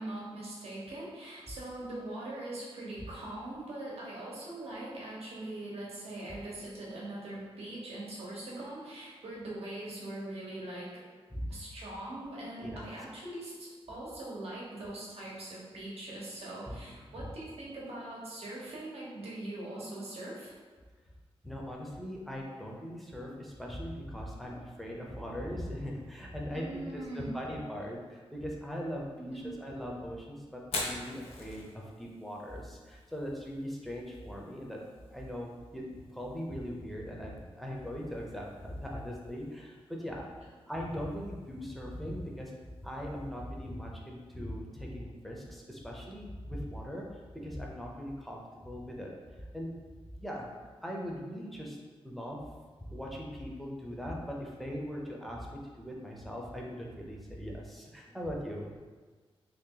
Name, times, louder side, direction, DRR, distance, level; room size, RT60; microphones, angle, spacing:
voice 1, 0.0-11.0 11.5-20.5 26.5-27.4 29.2-29.6 58.0-58.2, right 1 dB, 75° right, -5 dB, 1.0 m, -41 dB
voice 2, 21.4-34.8 35.1-42.5 42.8-49.1 49.4-49.7 50.2-50.5 50.8-51.8 52.0-52.4 52.9-58.8, equal, ahead, -2 dB, 0.5 m, -40 dB
Fire, 30.6-44.5, left 2 dB, 75° left, 0.7 m, -48 dB
2.9 x 2.8 x 3.7 m, 1.4 s
wide cardioid pair, 165°, 10 cm